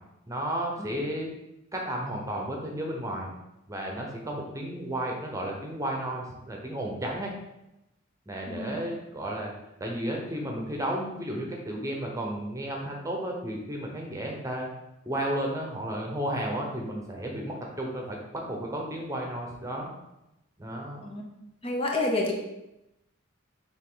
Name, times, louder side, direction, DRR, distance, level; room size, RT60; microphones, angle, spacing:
voice 1, 0.3-1.3 1.7-3.3 3.7-7.3 8.3-9.5 9.8-14.7 15.1-19.9 20.6-21.0, right 1 dB, 15° right, 0 dB, 0.9 m, -33 dB
voice 2, 8.5-8.8 21.0-21.2 21.6-22.3, left 2 dB, 25° left, 0 dB, 0.8 m, -29 dB
7.3 x 3.7 x 3.8 m, 0.91 s
head